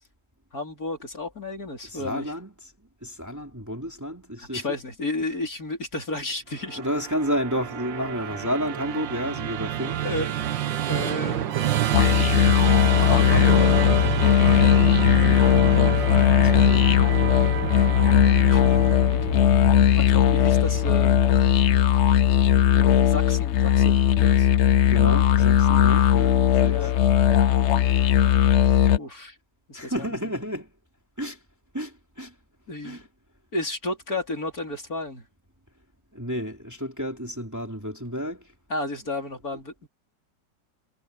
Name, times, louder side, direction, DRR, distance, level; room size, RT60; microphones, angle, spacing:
voice 1, 0.5-2.3 4.4-6.8 10.0-10.3 10.9-11.7 12.0-14.5 15.0-15.7 18.5-18.6 19.3-19.5 20.0-21.2 22.7-24.5 26.7-26.9 29.0-29.4 29.7-30.3 32.7-33.0 33.5-35.2 38.7-39.9, left 2 dB, 50° left, 4.6 m, -33 dB
voice 2, 1.8-2.7 3.0-4.8 6.8-10.0 15.7-17.0 24.9-26.9 29.7-30.7 31.2-31.4 31.7-32.3 32.8-33.1 36.1-38.5, equal, 10° right, 3.1 m, -31 dB
Musical instrument, 6.6-21.9, right 11 dB, 85° right, 1.7 m, -29 dB
sound 1, 11.9-29.0, left 10 dB, 85° left, 0.6 m, -18 dB
omnidirectional pair, 2.0 m